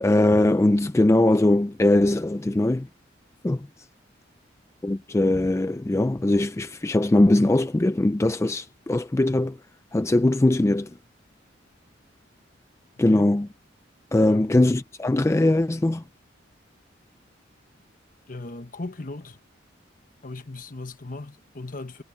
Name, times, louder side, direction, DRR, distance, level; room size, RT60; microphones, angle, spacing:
voice 1, 0.0-2.9 3.4-3.7 4.8-9.6 9.9-11.0 13.0-13.5 14.1-16.0, left 1 dB, 15° left, 0.3 m, -21 dB
voice 2, 14.3-14.6 18.3-19.4 20.2-22.0, left 2 dB, 45° left, 1.2 m, -37 dB
head